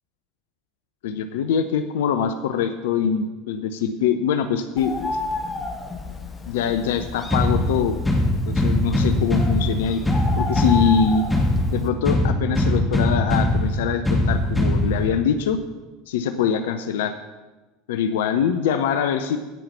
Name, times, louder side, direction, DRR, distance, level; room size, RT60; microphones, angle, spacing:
voice 1, 1.0-5.2 6.5-8.0 8.5-10.0 10.4-11.2 11.7-15.6 16.1-17.1 17.9-19.4, left 7 dB, 60° left, 9 dB, 0.6 m, -23 dB
Bird, 4.8-11.9, left 3 dB, 20° left, 1.7 m, -32 dB
sound 1, 7.3-15.3, left 1 dB, 5° left, 1.9 m, -21 dB
16.5 x 5.7 x 5.6 m, 1.2 s
figure-of-eight pair, 75°, 0 cm